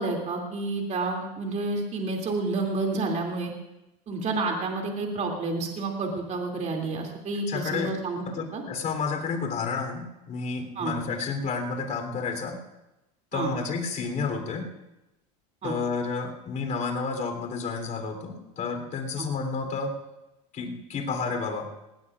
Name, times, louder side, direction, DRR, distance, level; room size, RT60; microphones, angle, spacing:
voice 1, 0.0-3.5 4.1-8.2 8.5-8.6 10.8-10.9 13.3-13.5 15.6-15.8 19.2-19.3, right 3 dB, 35° right, 1 dB, 2.7 m, -29 dB
voice 2, 7.5-8.0 8.3-12.6 13.3-14.7 15.6-19.9 20.5-21.7, left 4 dB, 40° left, 4 dB, 3.4 m, -31 dB
19.5 x 18.5 x 2.5 m, 0.95 s
hypercardioid pair, 100°, 21 cm